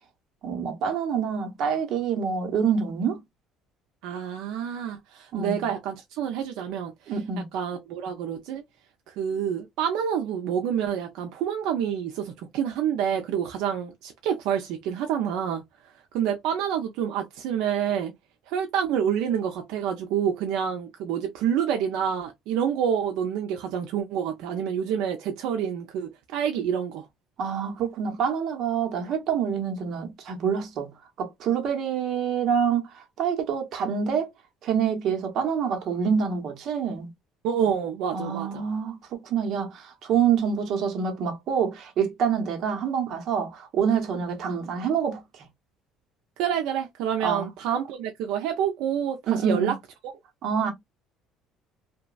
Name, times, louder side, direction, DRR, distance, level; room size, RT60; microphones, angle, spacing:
voice 1, 0.4-3.2 5.3-5.7 7.1-7.5 27.4-30.9 31.2-34.3 34.6-37.1 38.1-45.2 47.2-47.5 49.3-49.7 50.4-50.7, right 7 dB, 55° right, 0.8 m, -26 dB
voice 2, 4.0-6.9 7.5-8.6 9.2-15.6 16.1-18.1 18.5-27.1 37.4-38.6 46.4-49.7, right 8 dB, 80° right, 0.4 m, -28 dB
2.9 x 2.2 x 2.3 m
cardioid pair, 135°, 0 cm